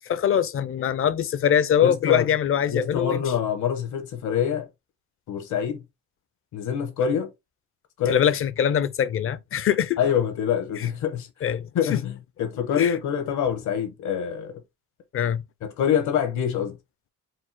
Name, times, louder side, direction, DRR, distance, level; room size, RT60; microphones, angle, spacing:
voice 1, 0.0-3.2 8.1-10.0 10.8-10.9 11.4-12.0 12.8-12.9 15.1-15.4, left 9 dB, 45° left, 0.5 m, -23 dB
voice 2, 1.8-2.3 2.7-4.7 5.3-5.8 6.5-7.3 8.0-8.3 10.0-11.3 11.7-14.6 15.6-16.8, left 8 dB, 75° left, 1.2 m, -25 dB
4.6 x 2.1 x 4.4 m
cardioid pair, 90°, 30 cm